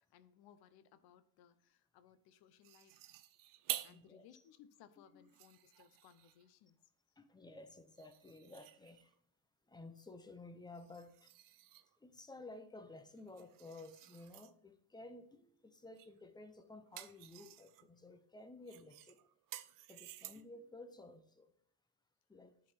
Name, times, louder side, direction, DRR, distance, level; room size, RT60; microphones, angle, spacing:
voice 1, 0.1-3.1 3.8-6.8, left 9 dB, 70° left, 0.8 m, -64 dB
sound 1, 2.6-4.1 4.6-4.7 5.2-6.5 8.0-9.2 10.7-12.0 13.2-14.5 16.0-16.2 16.6-17.9 18.7-20.6, right 14 dB, 55° right, 0.5 m, -50 dB
voice 2, 3.9-4.4 5.0-5.3 7.2-9.1 9.7-11.3 12.0-19.2 19.9-21.5 22.3-22.5, left 2 dB, 10° left, 0.6 m, -54 dB
10.5 x 4.1 x 4.3 m
cardioid pair, 115°, 39 cm